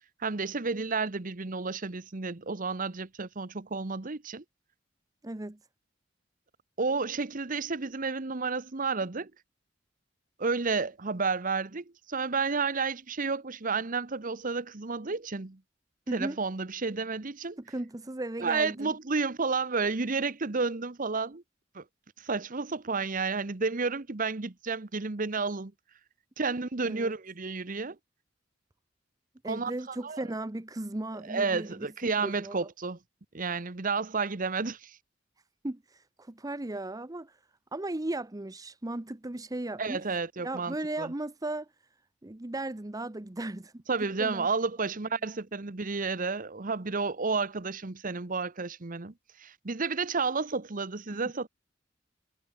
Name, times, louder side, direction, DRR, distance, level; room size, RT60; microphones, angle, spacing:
voice 1, 0.2-4.4 6.8-9.3 10.4-15.6 16.1-17.6 18.4-21.4 21.7-21.8 22.2-25.7 26.4-28.0 29.4-30.2 31.3-33.0 33.3-35.0 39.8-41.1 43.9-49.1 49.4-51.5, right 4 dB, 45° right, 1.1 m, -31 dB
voice 2, 5.2-5.6 16.1-16.4 17.7-18.9 26.8-27.1 29.4-32.7 35.6-37.3 37.7-40.0 40.4-41.7 42.2-43.7 44.2-44.5 51.1-51.2, right 2 dB, 20° right, 0.8 m, -36 dB
head